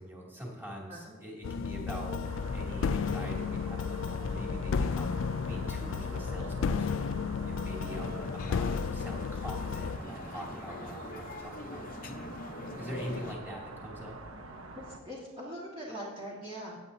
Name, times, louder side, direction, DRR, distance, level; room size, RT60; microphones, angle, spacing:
voice 1, 0.0-2.2 2.5-5.2 5.5-7.1 7.4-12.2 12.7-14.1, equal, 10° right, -3 dB, 2.5 m, -43 dB
sound 1, 1.4-10.0, left 5 dB, 65° left, 0.4 m, -33 dB
sound 2, 2.2-15.0, right 2 dB, 90° right, 1.1 m, -46 dB
sound 3, 7.9-13.3, left 2 dB, 45° left, 0.8 m, -44 dB
voice 2, 14.8-16.8, equal, 30° right, -6 dB, 1.7 m, -42 dB
16.5 x 9.3 x 2.7 m, 1.3 s
head